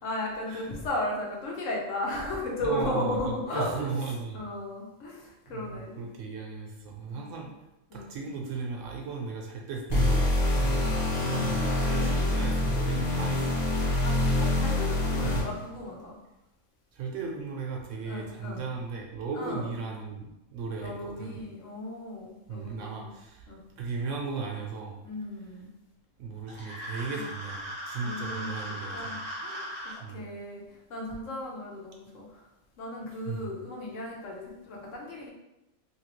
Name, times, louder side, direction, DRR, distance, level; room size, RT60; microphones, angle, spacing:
voice 1, 0.0-6.1 7.1-7.4 7.9-8.1 11.3-12.4 13.2-13.5 13.8-16.2 18.0-18.6 19.3-19.7 20.8-23.1 23.5-23.6 25.0-25.7 27.1-27.2 28.0-29.7 30.1-32.5 32.8-35.3, left 1 dB, 65° left, -2 dB, 1.1 m, -36 dB
voice 2, 2.6-4.4 5.5-7.5 7.9-13.6 15.2-15.5 16.9-21.4 22.5-25.0 26.2-29.2 30.0-30.2 33.3-33.5, right 4 dB, 70° right, 0 dB, 0.9 m, -36 dB
sound 1, 9.9-15.6, left 1 dB, 30° left, 1.1 m, -26 dB
sound 2, 26.5-30.0, equal, 30° right, 0.6 m, -38 dB
3.0 x 2.8 x 3.0 m, 0.94 s
omnidirectional pair, 1.5 m